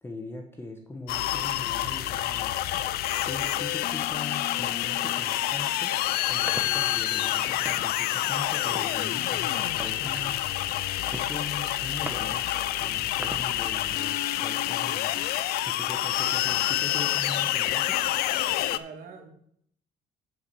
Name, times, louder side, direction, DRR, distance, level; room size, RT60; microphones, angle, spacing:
voice 1, 0.0-2.6 3.2-5.9 6.3-10.3 11.1-12.5 12.8-15.1 15.7-18.0, left 2 dB, 15° left, 3 dB, 1.1 m, -40 dB
sound 1, 1.1-18.8, left 14 dB, 70° left, 0.5 m, -28 dB
sound 2, 6.0-13.9, right 2 dB, 10° right, 1.0 m, -44 dB
voice 2, 12.8-13.1 18.7-19.3, right 5 dB, 60° right, 3 dB, 2.1 m, -45 dB
8.3 x 4.9 x 6.9 m, 0.67 s
supercardioid pair, 90°, 16 cm